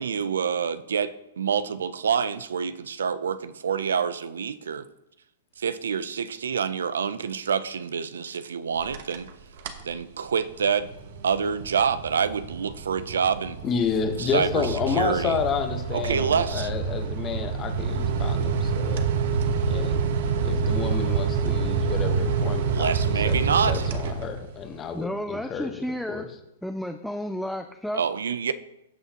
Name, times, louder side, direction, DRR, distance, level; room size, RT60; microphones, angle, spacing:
voice 1, 0.0-4.9 5.6-9.3 9.8-10.9 11.2-13.6 14.2-15.4 15.9-16.7 22.7-23.9 27.9-28.5, right 6 dB, 85° right, 14 dB, 0.5 m, -27 dB
sound 1, 8.8-9.3 9.6-9.9 10.4-24.7, right 5 dB, 60° right, 1.0 m, -27 dB
voice 2, 13.6-19.0 19.7-22.9 23.2-25.7 26.1-26.3, left 6 dB, 25° left, 6 dB, 1.1 m, -30 dB
voice 3, 24.9-26.3 26.6-28.0, equal, ahead, 7 dB, 0.4 m, -32 dB
15.5 x 5.6 x 2.9 m, 0.86 s
hypercardioid pair, 135°, 0 cm